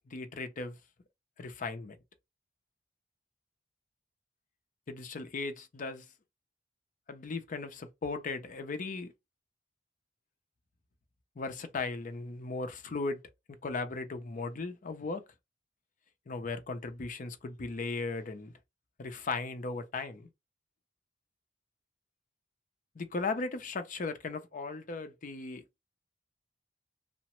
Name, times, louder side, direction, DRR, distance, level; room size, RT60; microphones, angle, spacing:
voice 1, 0.1-0.8 1.4-2.0 4.9-6.1 7.1-9.1 11.4-13.2 13.6-15.2 16.3-18.5 19.0-20.3 23.0-25.6, left 3 dB, 45° left, 0.5 m, -37 dB
2.8 x 2.1 x 2.9 m
head